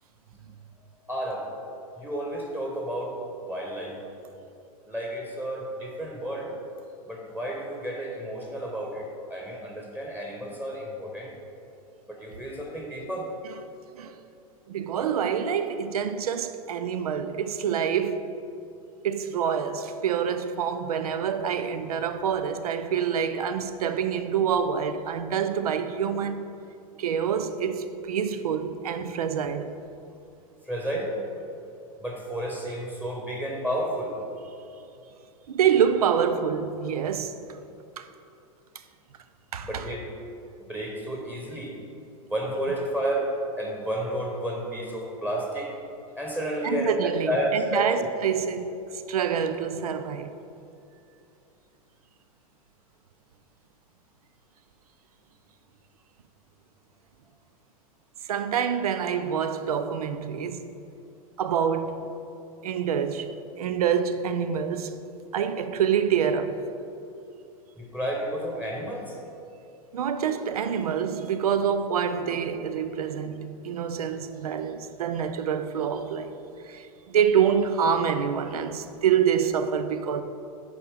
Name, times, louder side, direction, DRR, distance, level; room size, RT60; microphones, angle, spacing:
voice 1, 1.1-1.4 2.0-3.1 3.5-4.0 4.9-6.5 7.1-11.4 12.1-13.3 30.7-31.1 32.0-34.1 39.6-40.1 40.6-41.7 42.3-43.3 43.6-45.7 46.1-48.1 67.8-69.1, right 1 dB, 10° right, 1.1 m, -31 dB
voice 2, 14.7-18.2 19.0-26.4 27.0-29.7 35.5-37.4 38.0-38.1 39.5-39.9 46.6-48.8 49.1-50.3 58.3-60.7 61.4-62.1 62.6-65.0 65.3-66.6 69.9-76.3 76.7-80.2, right 7 dB, 85° right, 0.5 m, -26 dB
6.6 x 4.9 x 5.0 m
hypercardioid pair, 110°, 19 cm